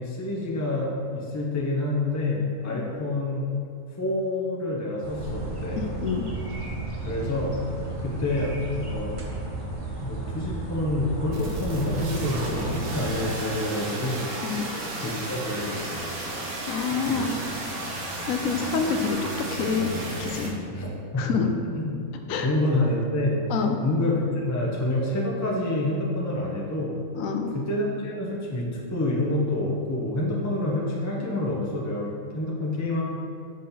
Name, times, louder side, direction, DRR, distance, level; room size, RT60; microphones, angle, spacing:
voice 1, 0.0-3.5 4.0-5.8 7.0-7.5 8.0-9.1 10.0-14.3 15.0-16.1 16.8-17.3 18.8-19.0 20.7-21.5 21.8-22.0 22.4-23.4 23.8-27.0 27.5-33.0, left 1 dB, 25° left, -3 dB, 0.4 m, -27 dB
sound 1, 5.0-13.2, right 2 dB, 35° right, 0.6 m, -34 dB
voice 2, 5.8-6.3 14.4-14.6 16.7-17.3 18.2-19.2 19.5-20.5 21.2-21.5 22.3-22.5 23.5-23.8 27.1-27.5, left 5 dB, 75° left, 5 dB, 0.9 m, -27 dB
sound 2, 11.3-20.5, right 1 dB, 80° right, 1.4 m, -33 dB
6.4 x 3.9 x 4.1 m, 2.5 s
omnidirectional pair, 1.5 m